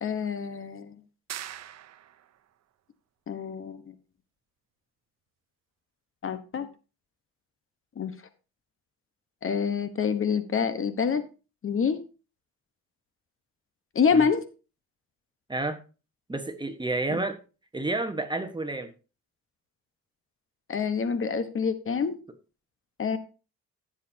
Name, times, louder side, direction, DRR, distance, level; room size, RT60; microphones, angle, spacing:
voice 1, 0.0-0.9 3.3-3.8 6.2-6.7 8.0-8.1 9.4-11.2 11.6-12.0 13.9-14.5 20.7-22.2 23.0-23.2, left 6 dB, 45° left, 11 dB, 1.1 m, -26 dB
sound 1, 1.3-2.4, right 11 dB, 60° right, 0.8 m, -41 dB
voice 2, 15.5-15.8 16.3-17.4 17.7-18.9, right 2 dB, 15° right, 8 dB, 1.3 m, -30 dB
14.5 x 7.5 x 2.8 m, 0.33 s
cardioid pair, 90°, 30 cm